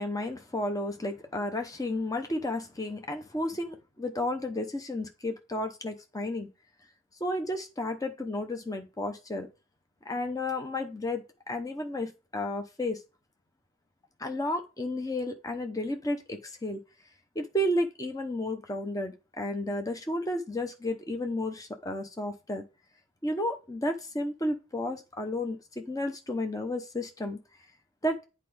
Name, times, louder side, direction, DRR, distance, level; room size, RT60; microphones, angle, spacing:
voice 1, 0.0-6.5 7.2-9.5 10.0-13.0 14.2-16.8 17.3-22.6 23.2-27.4 28.0-28.2, left 1 dB, 15° left, 0.8 m, -32 dB
8.4 x 4.7 x 3.4 m
head